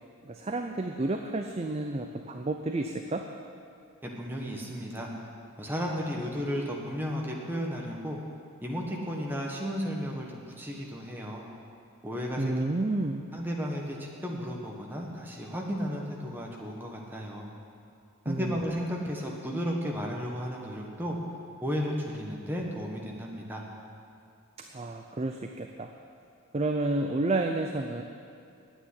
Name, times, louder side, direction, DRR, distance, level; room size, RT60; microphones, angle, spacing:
voice 1, 0.2-3.2 12.4-13.2 18.3-18.6 24.7-25.9 26.5-28.0, right 2 dB, 30° right, 4 dB, 0.5 m, -30 dB
voice 2, 4.0-5.1 5.6-8.2 8.6-11.5 12.0-12.6 13.3-17.5 18.2-21.2 21.6-23.6, equal, 10° right, -1 dB, 1.4 m, -34 dB
9.2 x 9.0 x 9.7 m, 2.5 s
head